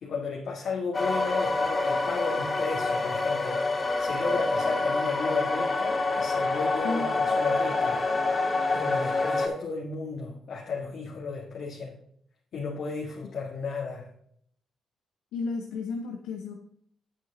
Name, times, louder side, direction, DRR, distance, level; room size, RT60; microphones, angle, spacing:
voice 1, 0.0-12.0 12.5-14.1, left 4 dB, 65° left, -3 dB, 2.0 m, -34 dB
sound 1, 0.9-9.5, left 3 dB, 35° left, 2.3 m, -27 dB
voice 2, 6.8-7.1 15.3-16.5, left 4 dB, 80° left, 4 dB, 0.9 m, -32 dB
8.8 x 8.3 x 4.2 m, 0.67 s
hypercardioid pair, 50°, 0 cm